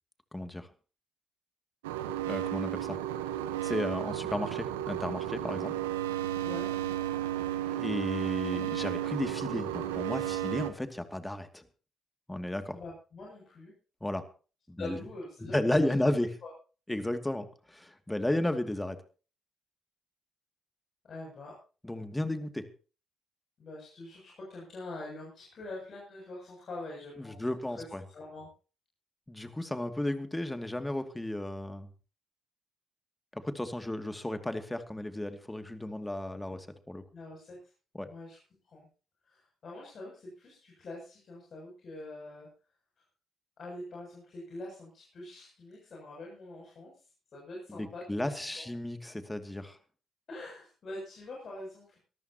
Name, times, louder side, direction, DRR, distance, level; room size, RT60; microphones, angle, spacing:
voice 1, 0.3-0.7 2.3-3.0 3.6-5.7 7.7-11.6 12.3-12.8 14.0-14.2 14.7-15.0 15.4-16.3 16.9-19.0 21.8-22.7 27.2-28.0 29.3-31.9 33.3-37.0 37.9-38.1 47.7-49.8, left 1 dB, 10° left, 8 dB, 2.5 m, -33 dB
sound 1, 1.8-10.7, right 12 dB, 90° right, 1.1 m, -33 dB
voice 2, 6.4-6.7 12.7-13.7 14.8-16.1 16.4-16.5 21.0-21.6 23.6-27.9 28.1-28.5 37.1-37.6 38.1-38.4 38.6-38.9 39.2-42.5 43.6-47.0 47.3-48.7 50.3-52.0, left 2 dB, 55° left, -3 dB, 7.7 m, -44 dB
23.5 x 14.0 x 3.0 m, 0.36 s
hypercardioid pair, 45°, 0 cm